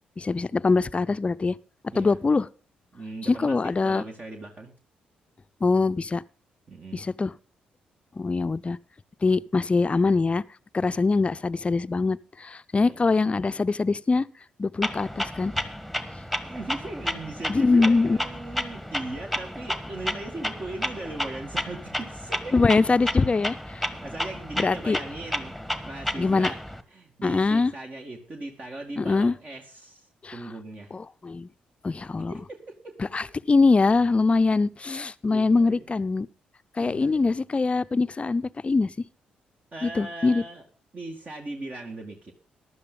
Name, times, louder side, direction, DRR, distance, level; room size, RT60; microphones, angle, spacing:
voice 1, 0.2-1.6 1.9-2.5 3.3-4.0 5.6-6.2 6.9-7.3 8.2-8.8 9.2-10.4 10.7-14.3 14.6-15.5 17.5-18.2 22.5-23.9 24.6-25.0 26.2-26.5 27.2-27.7 29.0-29.3 30.2-30.3 30.9-31.5 31.8-32.3 33.1-36.3 36.8-38.9 39.8-40.4, left 3 dB, 30° left, 0.6 m, -23 dB
voice 2, 2.9-4.7 6.7-7.0 12.8-13.0 16.4-22.6 24.0-26.6 26.9-31.0 32.0-33.3 35.3-36.0 36.8-37.4 39.7-40.6 40.9-42.3, right 2 dB, 45° right, 2.0 m, -39 dB
Clock, 14.8-26.8, equal, 5° right, 1.5 m, -32 dB
15.0 x 11.0 x 3.9 m
hypercardioid pair, 45°, 4 cm